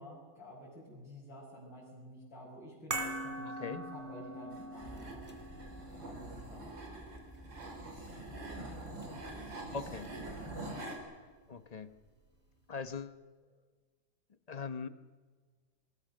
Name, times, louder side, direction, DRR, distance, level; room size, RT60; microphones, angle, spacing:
voice 1, 0.0-5.2 6.1-6.7, equal, 85° left, -6 dB, 6.3 m, -50 dB
sound 1, 2.9-9.3 9.6-9.7, right 1 dB, 25° right, 3.7 m, -44 dB
sound 2, 4.5-11.0, right 2 dB, 85° right, 5.0 m, -45 dB
sound 3, 4.8-10.8, right 1 dB, 5° right, 1.2 m, -52 dB
voice 2, 9.7-10.1 11.5-11.9 12.7-13.2 14.5-14.9, left 5 dB, 35° left, 11 dB, 0.7 m, -40 dB
26.5 x 22.0 x 6.6 m, 1.5 s
omnidirectional pair, 2.0 m